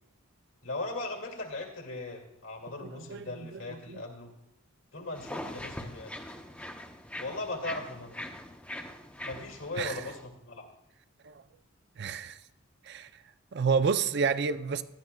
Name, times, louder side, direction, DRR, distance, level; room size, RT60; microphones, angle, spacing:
voice 1, 0.6-4.3 4.9-6.1 7.2-8.2 9.2-10.7, left 2 dB, 70° left, 2.1 m, -38 dB
voice 2, 2.8-4.0 9.8-10.0 11.2-11.4 12.0-12.4 12.9-13.1 13.5-14.8, right 5 dB, 50° right, 0.4 m, -30 dB
sound 1, 5.1-10.3, left 1 dB, 5° left, 0.6 m, -42 dB
16.0 x 11.5 x 2.2 m
head